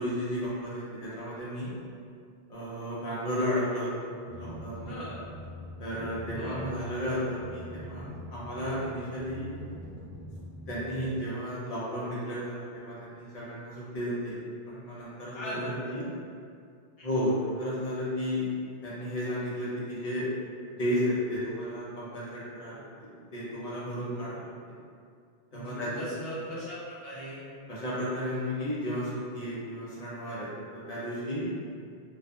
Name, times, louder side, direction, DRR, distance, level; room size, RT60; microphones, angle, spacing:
voice 1, 0.0-1.7 2.5-4.9 5.8-9.5 10.7-14.4 14.7-16.0 17.0-18.5 18.8-20.3 20.8-24.7 25.5-25.9 27.7-31.5, equal, 40° left, -8 dB, 0.7 m, -33 dB
sound 1, 4.3-11.2, left 1 dB, ahead, 0.6 m, -43 dB
voice 2, 4.8-5.2 6.3-6.6 15.3-16.0 17.0-17.2 25.5-27.4, equal, 75° left, -8 dB, 0.8 m, -39 dB
2.6 x 2.4 x 2.3 m, 2.3 s
omnidirectional pair, 1.1 m